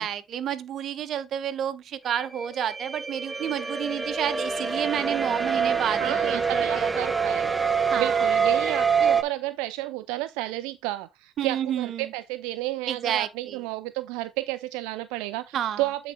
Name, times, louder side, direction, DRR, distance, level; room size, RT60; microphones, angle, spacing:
voice 1, 0.0-7.1 7.9-8.3 11.4-12.1 12.9-13.6 15.5-15.8, right 9 dB, 55° right, 1.0 m, -30 dB
sound 1, 2.1-9.2, right 6 dB, 15° right, 0.8 m, -25 dB
voice 2, 6.0-7.7 8.0-16.1, right 17 dB, 85° right, 0.4 m, -32 dB
9.1 x 4.1 x 3.6 m
supercardioid pair, 85°, 0 cm